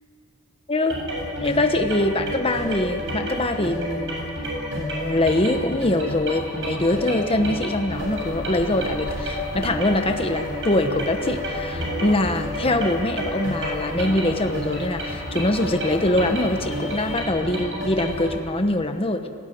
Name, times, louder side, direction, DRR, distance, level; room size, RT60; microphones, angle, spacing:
sound 1, 0.9-18.4, equal, 60° right, 7.6 m, -30 dB
voice 1, 1.4-4.4 4.7-19.3, left 1 dB, 25° left, 6 dB, 1.1 m, -23 dB
sound 2, 7.9-17.2, left 1 dB, 60° left, 3.1 m, -38 dB
20.5 x 17.0 x 9.4 m, 2.4 s
head